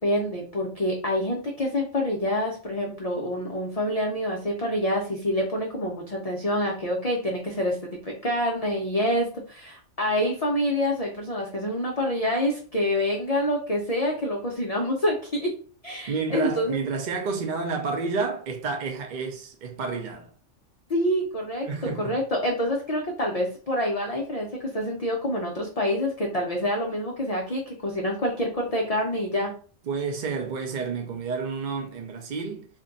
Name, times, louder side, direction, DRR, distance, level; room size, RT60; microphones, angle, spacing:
voice 1, 0.0-15.5 15.8-16.8 20.9-29.5, equal, 45° left, 0.5 m, -27 dB
voice 2, 16.1-20.3 21.6-22.2 29.9-32.7, right 4 dB, 55° right, 0.5 m, -30 dB
2.5 x 2.2 x 3.8 m
omnidirectional pair, 1.3 m